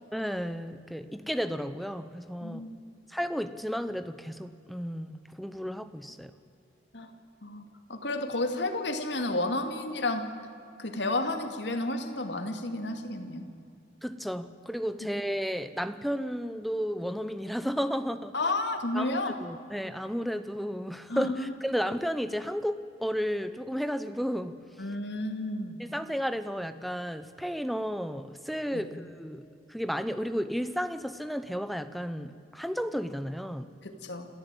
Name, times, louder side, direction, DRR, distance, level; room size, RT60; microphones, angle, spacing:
voice 1, 0.1-2.6 3.1-6.3 14.0-18.3 18.9-24.6 25.8-33.7, equal, ahead, 11 dB, 0.8 m, -33 dB
voice 2, 2.4-2.7 6.9-7.1 7.4-7.6 7.9-10.2 10.8-13.4 18.3-19.3 21.1-21.5 24.8-25.8 28.7-28.8 33.8-34.3, left 2 dB, 70° left, 6 dB, 2.4 m, -31 dB
27.5 x 15.0 x 9.1 m, 2.6 s
head